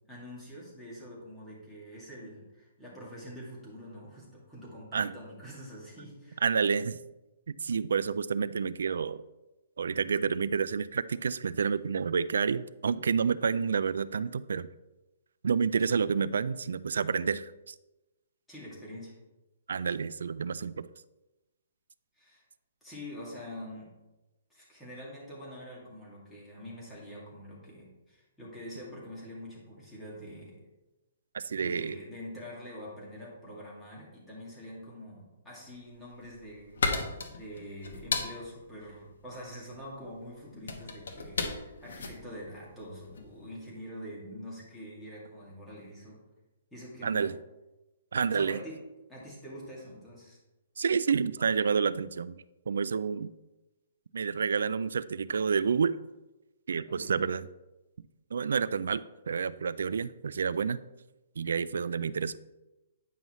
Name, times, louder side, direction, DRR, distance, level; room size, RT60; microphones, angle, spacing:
voice 1, 0.0-6.4 15.8-16.0 18.5-19.2 22.2-22.4 22.8-24.0 24.5-30.6 31.5-46.2 46.7-47.3 48.3-48.8 49.1-50.4 56.9-57.3, equal, 5° left, -6 dB, 2.1 m, -45 dB
voice 2, 6.4-7.0 7.5-9.2 9.8-14.7 15.4-17.7 19.7-20.9 31.3-32.0 47.0-47.3 48.1-48.6 50.8-53.3 54.1-56.0 56.7-57.5 58.3-60.8 61.4-62.4, right 6 dB, 80° right, 17 dB, 0.3 m, -29 dB
sound 1, 35.9-43.4, left 3 dB, 80° left, 1.1 m, -35 dB
9.1 x 5.5 x 3.1 m, 1.0 s
hypercardioid pair, 165°, 0 cm